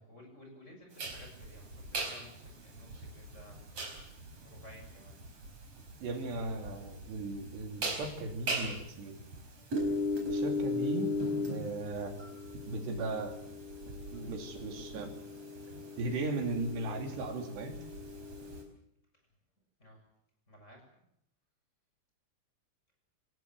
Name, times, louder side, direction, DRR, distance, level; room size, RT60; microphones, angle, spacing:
voice 1, 0.1-3.9 4.4-5.2 10.7-10.9 19.1-19.2 19.8-20.0 20.5-20.9, left 1 dB, 15° left, 2 dB, 7.1 m, -55 dB
sound 1, 1.0-18.6, left 1 dB, 40° right, 5.5 m, -38 dB
voice 2, 6.0-9.2 10.3-11.1 11.5-12.1 12.7-13.3 14.1-15.1 16.0-17.7, right 2 dB, 85° right, 4 dB, 5.0 m, -37 dB
26.5 x 18.5 x 7.4 m, 0.74 s
omnidirectional pair, 4.7 m